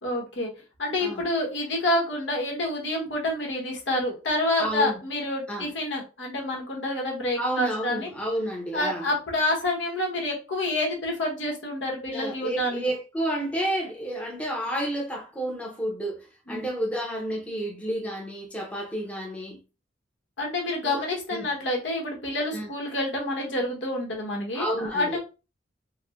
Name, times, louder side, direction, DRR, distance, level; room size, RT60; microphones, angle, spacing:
voice 1, 0.0-0.5 0.8-8.1 8.7-12.9 16.5-16.7 20.4-25.2, left 1 dB, 80° left, 1.2 m, -28 dB
voice 2, 4.6-5.0 5.5-5.7 7.3-9.1 12.1-19.6 20.8-21.0 21.3-21.5 22.5-22.7 24.5-25.2, right 1 dB, 5° left, 0.7 m, -30 dB
4.6 x 2.1 x 2.4 m
head